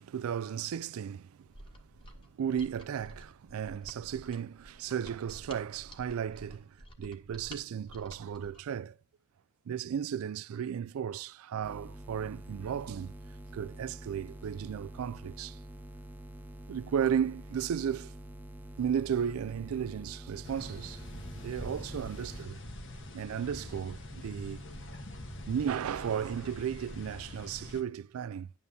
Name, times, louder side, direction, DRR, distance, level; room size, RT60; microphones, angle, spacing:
voice 1, 0.0-1.5 2.2-9.0 9.7-13.2 13.5-15.6 16.7-18.1 18.8-21.0 21.4-22.6 23.1-24.6 25.5-28.5, right 8 dB, 80° right, 0.3 m, -34 dB
Mechanisms, 1.5-8.7, equal, 25° left, 1.5 m, -51 dB
sound 1, 11.6-22.4, right 1 dB, 10° right, 0.7 m, -47 dB
sound 2, 20.4-27.8, left 1 dB, 65° left, 1.4 m, -44 dB
11.0 x 8.6 x 2.7 m
head